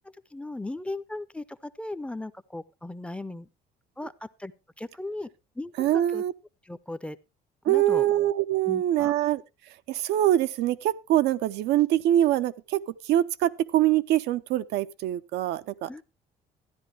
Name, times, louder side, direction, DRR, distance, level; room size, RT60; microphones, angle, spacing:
voice 1, 0.3-3.5 4.0-4.5 4.8-5.3 5.6-6.2 6.6-7.2 7.6-8.0 8.7-9.1 15.9-16.0, left 2 dB, 5° left, 0.6 m, -37 dB
voice 2, 5.8-6.3 7.7-9.4 9.9-15.9, right 13 dB, 80° right, 0.7 m, -24 dB
13.5 x 10.0 x 3.3 m
cardioid pair, 110°, 17 cm